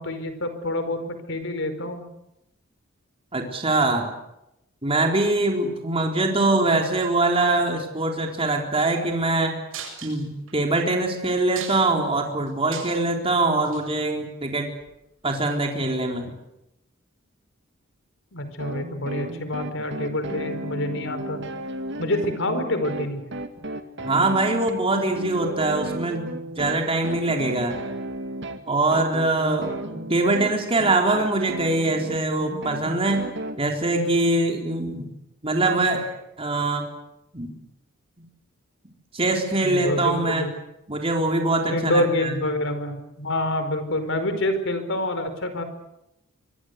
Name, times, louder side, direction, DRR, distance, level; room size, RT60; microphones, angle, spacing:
voice 1, 0.0-2.1 18.3-21.4 22.0-23.2 39.6-40.6 41.7-45.6, left 1 dB, 65° left, 9 dB, 4.9 m, -27 dB
voice 2, 3.3-4.1 4.8-9.6 10.0-14.7 15.2-16.3 24.0-26.3 26.6-27.7 28.7-33.3 33.6-35.1 35.4-36.1 36.4-36.9 37.3-37.5 39.1-40.5 40.9-42.4, right 2 dB, 30° right, 2 dB, 4.0 m, -23 dB
sound 1, 9.7-10.5 11.0-11.1 11.4-12.1 12.5-13.1 13.6-13.8 14.8-14.9, right 7 dB, 75° right, 7.5 m, -37 dB
sound 2, 18.6-33.6, right 1 dB, 60° right, 2.4 m, -34 dB
25.0 x 24.5 x 8.2 m, 0.87 s
head